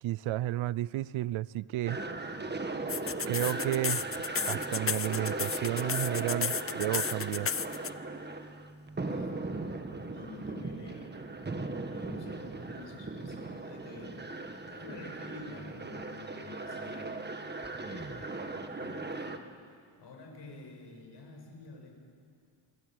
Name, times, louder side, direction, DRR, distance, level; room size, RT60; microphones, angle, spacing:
voice 1, 0.0-2.0 3.3-4.1 4.5-7.5, right 14 dB, 85° right, 0.6 m, -32 dB
sound 1, 1.9-19.4, right 3 dB, 20° right, 1.6 m, -38 dB
sound 2, 2.9-7.9, left 7 dB, 30° left, 0.6 m, -33 dB
voice 2, 9.0-9.5 10.1-11.3 11.9-14.2 14.7-17.3 17.8-19.4 20.0-21.9, left 2 dB, 60° left, 6.5 m, -48 dB
27.5 x 22.0 x 9.0 m
wide cardioid pair, 125°, 47 cm